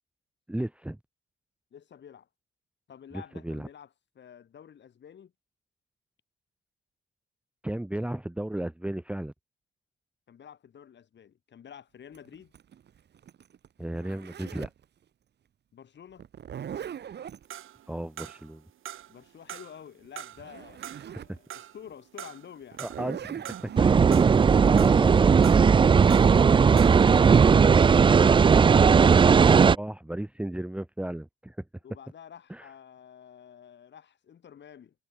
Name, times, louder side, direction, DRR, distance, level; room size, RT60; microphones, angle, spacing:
voice 1, 0.5-1.0 3.1-3.7 7.6-9.3 13.8-14.7 17.9-18.6 21.3-21.4 22.8-23.9 24.8-25.3 29.6-31.6 32.5-32.7, right 1 dB, 5° right, 1.1 m, -34 dB
voice 2, 1.7-2.3 2.9-5.3 10.3-12.5 15.7-16.3 19.1-20.8 21.2-22.8 31.8-34.9, left 8 dB, 60° left, 6.3 m, -49 dB
Zipper (clothing), 12.1-14.8 16.2-17.5 20.0-20.1 20.4-21.4 21.9-22.0 22.7-24.7, right 9 dB, 55° right, 1.2 m, -40 dB
sound 1, 17.5-18.6 18.9-19.8 20.2-23.1 23.5-24.5 24.8-26.4 26.7-27.1, right 11 dB, 75° right, 2.3 m, -43 dB
sound 2, 23.8-29.7, right 6 dB, 25° right, 0.4 m, -17 dB
cardioid pair, 100°, 21 cm